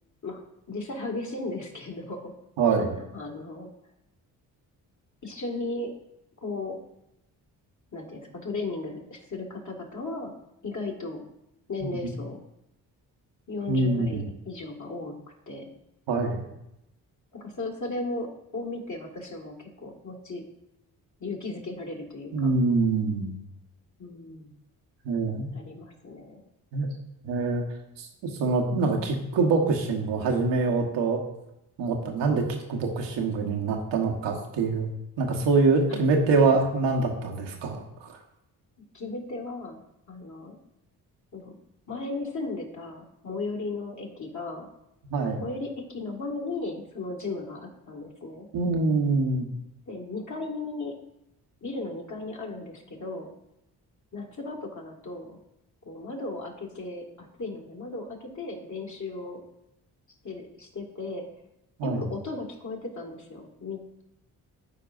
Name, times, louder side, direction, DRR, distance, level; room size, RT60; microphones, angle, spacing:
voice 1, 0.2-2.3 3.1-3.7 5.2-5.9 6.4-6.8 7.9-10.3 10.6-11.2 11.7-12.4 13.5-15.2 15.5-15.7 17.3-20.4 21.2-22.5 24.0-24.6 25.5-26.4 35.9-36.0 36.4-36.6 38.9-39.8 40.1-40.6 41.3-41.5 41.9-44.7 45.4-48.5 49.9-51.0 51.6-53.3 54.1-55.4 55.9-59.4 60.2-61.3 61.8-64.0, left 3 dB, 40° left, 1 dB, 1.9 m, -36 dB
voice 2, 2.6-3.0 12.0-12.1 13.7-14.3 16.1-16.4 22.3-23.4 25.0-25.5 26.7-26.9 27.2-27.6 28.0-31.2 31.8-32.4 32.7-34.9 35.2-38.2 45.0-45.4 48.5-49.5 61.8-62.0, right 3 dB, 75° right, 1 dB, 1.3 m, -25 dB
12.5 x 4.6 x 2.5 m, 0.86 s
hypercardioid pair, 45°, 43 cm